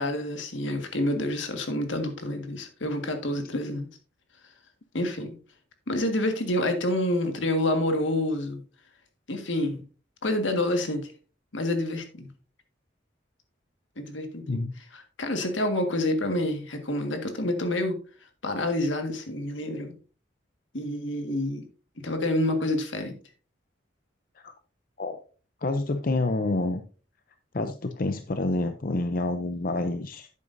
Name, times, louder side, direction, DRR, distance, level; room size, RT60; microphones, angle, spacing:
voice 1, 0.0-3.9 4.9-5.4 5.9-8.6 9.3-9.8 10.2-11.1 11.5-12.3 14.0-14.6 14.9-18.0 18.4-19.9 20.7-21.6 22.0-23.1, left 1 dB, 75° left, 5 dB, 1.7 m, -28 dB
voice 2, 25.6-26.8 27.5-30.3, left 2 dB, 45° left, 8 dB, 0.6 m, -28 dB
11.0 x 8.4 x 2.6 m, 0.37 s
head